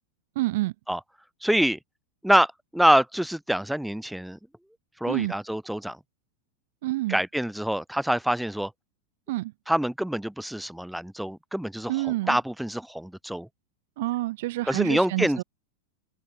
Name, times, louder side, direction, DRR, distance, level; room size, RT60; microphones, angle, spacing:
voice 1, 0.4-0.7 5.1-5.4 6.8-7.2 9.3-9.5 11.9-12.4 14.0-15.4, right 18 dB, 65° right, 5.7 m, -28 dB
voice 2, 1.4-1.8 2.2-4.4 5.0-6.0 7.1-8.7 9.7-11.9 12.3-13.5 14.7-15.4, equal, ahead, 3.3 m, -25 dB
supercardioid pair, 135°, 0 cm